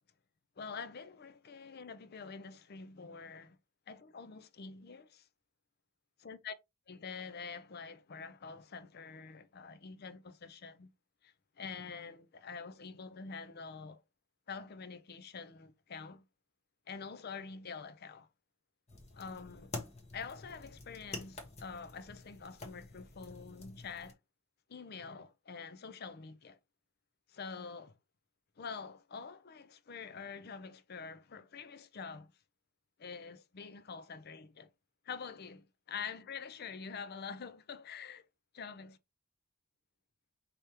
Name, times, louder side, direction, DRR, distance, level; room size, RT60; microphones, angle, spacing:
voice 1, 0.6-3.6 3.9-5.3 6.2-6.5 6.9-10.9 11.2-14.0 14.5-16.2 16.9-18.3 19.1-19.7 20.1-24.2 24.7-26.6 27.3-27.9 28.6-32.3 33.0-34.7 35.0-38.2 38.5-38.9, left 5 dB, 50° left, 0.5 m, -46 dB
sound 1, 18.9-24.1, left 2 dB, 30° left, 1.0 m, -48 dB
5.1 x 3.0 x 3.3 m
head